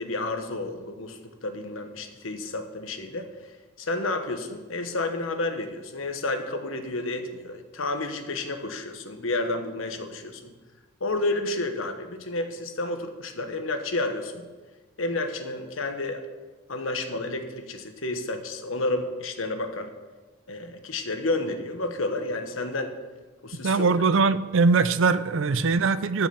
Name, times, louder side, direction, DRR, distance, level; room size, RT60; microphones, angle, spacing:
voice 1, 0.0-3.3 3.8-10.5 11.0-14.5 15.0-16.2 16.7-19.9 20.5-22.9 23.4-23.9, left 2 dB, 80° left, 6 dB, 1.3 m, -30 dB
voice 2, 23.6-26.3, right 4 dB, 70° right, 15 dB, 0.5 m, -21 dB
13.0 x 6.1 x 7.1 m, 1.3 s
head